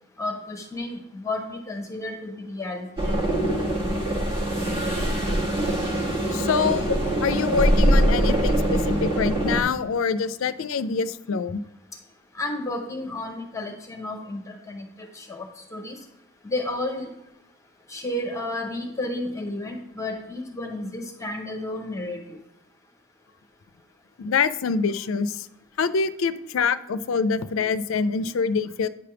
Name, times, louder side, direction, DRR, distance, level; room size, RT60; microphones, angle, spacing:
voice 1, 0.2-2.9 12.3-16.0 16.4-17.1 17.9-22.4, left 2 dB, 15° left, 3 dB, 0.7 m, -32 dB
sound 1, 3.0-9.6, right 1 dB, 25° right, 1.2 m, -23 dB
voice 2, 6.3-11.6 24.2-25.5 25.8-28.9, left 5 dB, 65° left, 14 dB, 0.4 m, -25 dB
9.2 x 3.4 x 5.7 m, 0.88 s
head